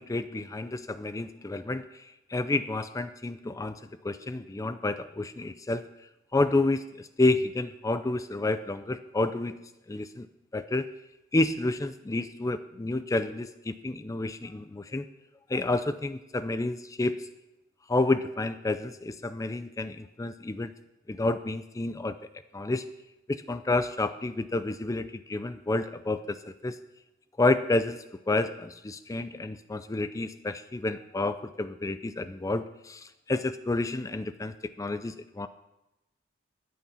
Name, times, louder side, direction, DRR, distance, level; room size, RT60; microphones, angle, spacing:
voice 1, 0.0-1.8 2.3-3.8 4.0-5.8 6.3-9.6 9.9-10.3 10.5-10.9 11.3-15.1 15.5-17.2 17.9-20.7 21.1-22.2 22.5-22.9 23.3-26.8 27.4-35.5, left 2 dB, 15° left, 12 dB, 0.4 m, -29 dB
13.0 x 8.6 x 5.7 m, 0.94 s
head